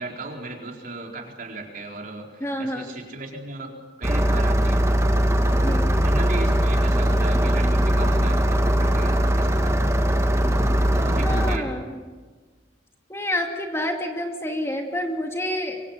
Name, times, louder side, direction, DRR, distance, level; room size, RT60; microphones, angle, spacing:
voice 1, 0.0-3.7 4.0-4.8 5.5-9.7 10.6-11.7, right 2 dB, 50° right, 1 dB, 4.3 m, -36 dB
voice 2, 2.4-3.0 5.6-6.0 11.2-12.0 13.1-15.8, left 1 dB, 15° left, 2 dB, 2.4 m, -28 dB
Engine starting, 4.0-11.6, equal, 15° right, 1.5 m, -20 dB
25.0 x 24.5 x 7.5 m, 1.4 s
head